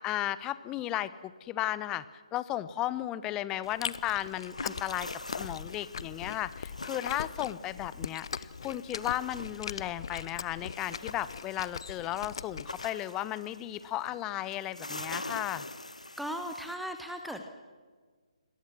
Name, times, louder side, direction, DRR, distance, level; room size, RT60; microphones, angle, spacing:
voice 1, 0.0-15.7, left 14 dB, 15° left, 16 dB, 0.8 m, -35 dB
Chewing mastication, 3.6-12.9, left 6 dB, 45° left, 0.8 m, -40 dB
sound 1, 3.8-16.8, left 2 dB, 80° left, 1.1 m, -46 dB
voice 2, 16.2-17.4, equal, ahead, 5 dB, 1.3 m, -37 dB
28.5 x 22.5 x 6.2 m, 1.5 s
figure-of-eight pair, 140°, 4 cm